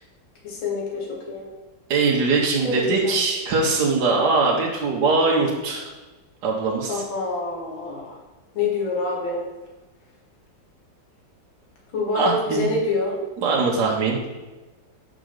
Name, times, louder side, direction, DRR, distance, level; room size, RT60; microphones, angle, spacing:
voice 1, 0.4-1.4 2.6-3.2 6.9-8.2 8.5-9.4 11.9-13.1, left 3 dB, 85° left, -3 dB, 2.5 m, -26 dB
voice 2, 1.9-5.9 6.4-7.0 12.1-12.7 13.4-14.2, right 3 dB, 65° right, -2 dB, 1.5 m, -21 dB
5.2 x 5.0 x 6.3 m, 1.2 s
omnidirectional pair, 2.1 m